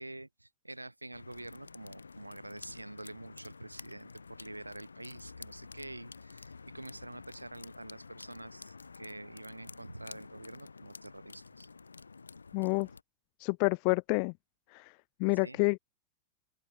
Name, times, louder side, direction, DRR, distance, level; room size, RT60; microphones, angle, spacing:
voice 1, 0.0-11.7 15.3-15.6, right 2 dB, 85° right, 4.0 m, -47 dB
sound 1, 1.1-13.0, left 4 dB, 75° left, 6.4 m, -50 dB
voice 2, 12.5-12.9 13.4-14.3 14.7-14.9 15.2-15.8, left 40 dB or more, 45° left, 0.4 m, -28 dB
open air
figure-of-eight pair, 90°, 0 cm